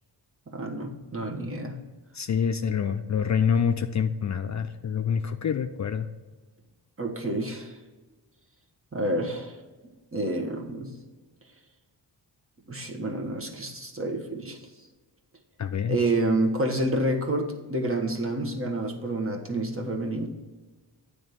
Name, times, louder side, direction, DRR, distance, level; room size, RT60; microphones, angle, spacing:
voice 1, 0.5-1.8 7.0-7.8 8.9-9.6 10.1-10.9 12.7-14.6 15.9-20.3, right 1 dB, 30° right, 2 dB, 1.4 m, -28 dB
voice 2, 2.1-6.1 15.6-16.0, left 7 dB, 40° left, 7 dB, 0.5 m, -26 dB
8.8 x 3.5 x 6.7 m, 1.3 s
cardioid pair, 65°, 43 cm